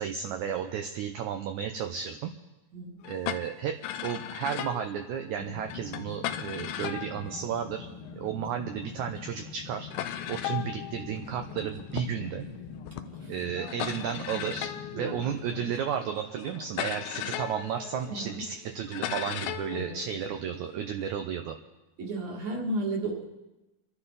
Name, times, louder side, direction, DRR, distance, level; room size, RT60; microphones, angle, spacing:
voice 1, 0.0-2.3 3.1-3.8 4.0-7.9 8.1-9.9 10.3-12.5 13.3-14.7 15.0-21.6, right 8 dB, 75° right, 5 dB, 1.9 m, -33 dB
sound 1, 3.0-8.3 9.1-9.2 9.4-9.5 9.9-21.1, left 11 dB, 90° left, 2.4 m, -38 dB
sound 2, 5.4-15.7, left 6 dB, 75° left, 1.3 m, -44 dB
voice 2, 13.1-13.7 14.9-15.3 18.1-18.4 19.7-20.0 22.0-23.3, right 2 dB, 55° right, -1 dB, 3.3 m, -34 dB
27.0 x 11.5 x 4.1 m, 1.0 s
omnidirectional pair, 4.0 m